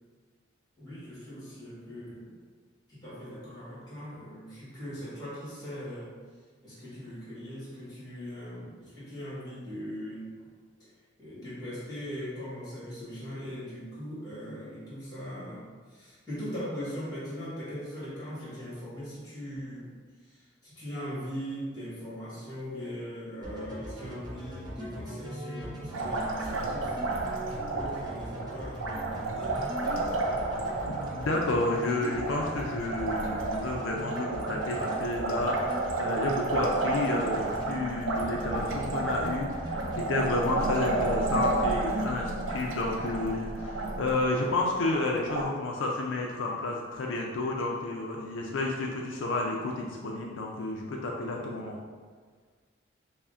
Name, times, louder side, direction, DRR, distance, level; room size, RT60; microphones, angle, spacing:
voice 1, 0.8-2.3 2.9-6.2 6.6-10.5 11.2-19.9 20.3-27.1 27.7-29.7, equal, 20° left, -9 dB, 1.4 m, -40 dB
sound 1, 23.4-37.8 38.1-38.8 39.1-40.0 40.3-40.9, equal, 20° right, 0.6 m, -40 dB
Liquid, 25.9-45.5, right 2 dB, 90° right, 0.4 m, -32 dB
voice 2, 30.8-51.8, left 2 dB, 75° left, -1 dB, 0.4 m, -31 dB
5.6 x 2.1 x 2.5 m, 1.5 s
head